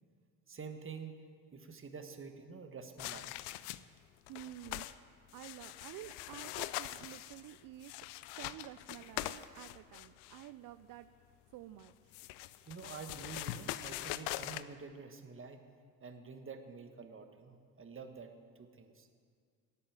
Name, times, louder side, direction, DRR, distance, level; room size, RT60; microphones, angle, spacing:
voice 1, 0.5-1.1 1.5-3.3 12.7-15.6 16.0-19.1, right 5 dB, 30° right, 7 dB, 1.4 m, -48 dB
sound 1, 3.0-4.0 4.3-5.0 5.3-10.5 11.8-14.6, left 16 dB, 75° left, 0.5 m, -43 dB
voice 2, 4.3-7.9 8.4-11.1 11.5-12.2, right 14 dB, 55° right, 13 dB, 0.5 m, -50 dB
11.0 x 8.6 x 8.8 m, 2.1 s
hypercardioid pair, 60°, 41 cm